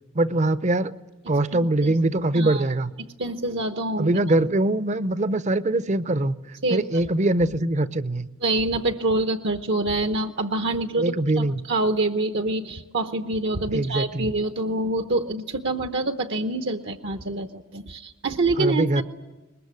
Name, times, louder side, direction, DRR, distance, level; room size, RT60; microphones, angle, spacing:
voice 1, 0.1-0.9 1.3-2.9 4.0-6.3 6.7-8.3 11.0-11.6 13.7-14.3 18.6-19.0, right 2 dB, 35° right, 14 dB, 0.7 m, -22 dB
voice 2, 1.5-1.9 2.3-2.6 3.2-4.2 6.6-7.0 8.4-19.0, right 2 dB, 60° right, 7 dB, 1.0 m, -26 dB
21.5 x 21.0 x 9.6 m, 1.2 s
head